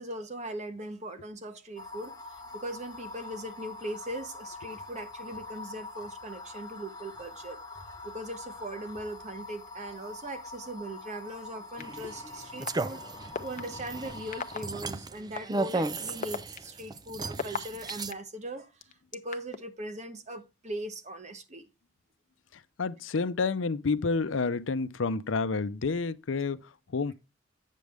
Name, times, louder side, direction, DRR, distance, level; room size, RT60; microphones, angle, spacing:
voice 1, 0.0-7.6 8.0-21.7, right 1 dB, 40° right, 1.0 m, -40 dB
sound 1, 1.8-14.7, left 2 dB, 20° left, 1.0 m, -44 dB
sound 2, 11.8-11.9 12.7-12.8 13.3-13.6 14.3-14.6 15.4-15.5 16.1-18.1 18.8-19.6, left 5 dB, 45° left, 0.7 m, -33 dB
sound 3, 11.8-18.1, right 3 dB, 20° right, 0.4 m, -36 dB
voice 2, 22.8-26.6 26.9-27.1, left 4 dB, 90° left, 0.6 m, -29 dB
8.4 x 6.5 x 3.4 m
head